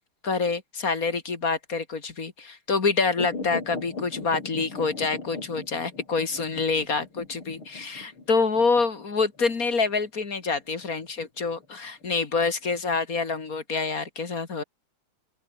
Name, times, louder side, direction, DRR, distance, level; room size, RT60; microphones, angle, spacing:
voice 1, 0.2-14.6, left 4 dB, 45° left, 2.5 m, -27 dB
sound 1, 3.2-12.0 12.4-12.5, left 3 dB, 85° left, 6.2 m, -39 dB
open air
omnidirectional pair, 2.3 m